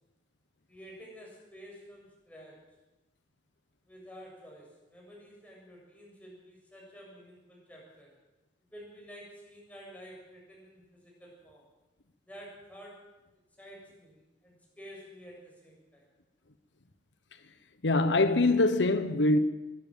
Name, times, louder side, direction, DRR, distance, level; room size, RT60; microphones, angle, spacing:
voice 1, 0.7-2.8 3.9-8.2 8.7-11.7 12.3-13.1 13.6-16.0, equal, 10° left, 7.5 m, -50 dB
voice 2, 17.8-19.4, left 2 dB, 85° left, 1.1 m, -23 dB
22.5 x 12.5 x 9.2 m
head